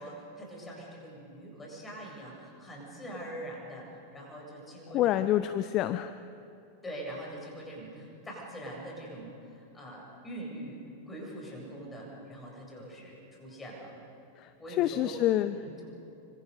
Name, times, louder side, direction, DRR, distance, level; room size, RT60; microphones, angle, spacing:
voice 1, 0.0-5.3 6.8-13.9 14.6-15.1 15.5-15.9, right 1 dB, 10° left, -2 dB, 7.9 m, -43 dB
voice 2, 4.9-6.2 14.4-14.5 14.8-15.6, left 13 dB, 35° left, 13 dB, 0.6 m, -27 dB
26.5 x 25.5 x 5.5 m, 2.8 s
figure-of-eight pair, 90°, 0 cm